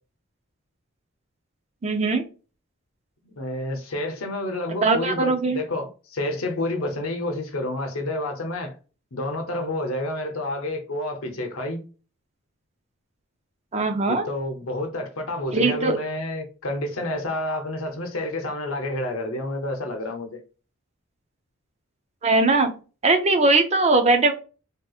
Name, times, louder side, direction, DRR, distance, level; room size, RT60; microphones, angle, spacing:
voice 1, 1.8-2.2 4.8-5.6 13.7-14.3 15.5-16.0 22.2-22.7 23.0-24.3, right 3 dB, 30° right, 0.4 m, -20 dB
voice 2, 3.2-8.7 9.1-11.8 14.1-20.4, left 1 dB, 80° left, 0.8 m, -29 dB
3.4 x 2.8 x 2.3 m
head